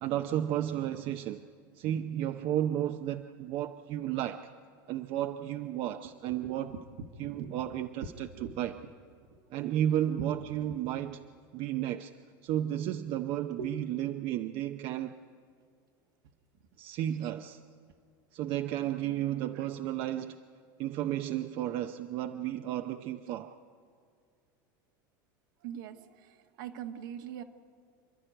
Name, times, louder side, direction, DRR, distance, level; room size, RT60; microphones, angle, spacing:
voice 1, 0.0-1.4 1.7-4.5 4.9-6.8 7.2-8.7 9.5-11.2 11.5-12.1 12.4-15.2 16.8-17.6 18.3-20.4 20.8-23.6, right 11 dB, 55° right, 0.7 m, -33 dB
voice 2, 6.4-6.8 7.3-7.7 8.4-8.6 12.5-12.6 13.5-13.7 25.6-27.4, right 8 dB, 75° right, 1.5 m, -42 dB
27.5 x 11.0 x 9.1 m
hypercardioid pair, 100°, 11 cm